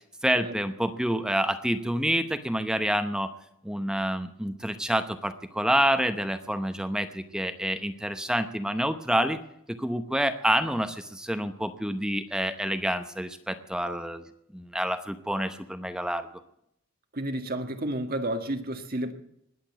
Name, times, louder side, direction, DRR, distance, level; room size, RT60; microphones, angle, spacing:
voice 1, 0.2-3.3 3.6-9.4 9.7-14.3 14.5-16.3, right 1 dB, 5° right, 0.8 m, -28 dB
voice 2, 17.1-19.1, right 1 dB, 45° right, 1.8 m, -31 dB
20.5 x 8.3 x 8.1 m
head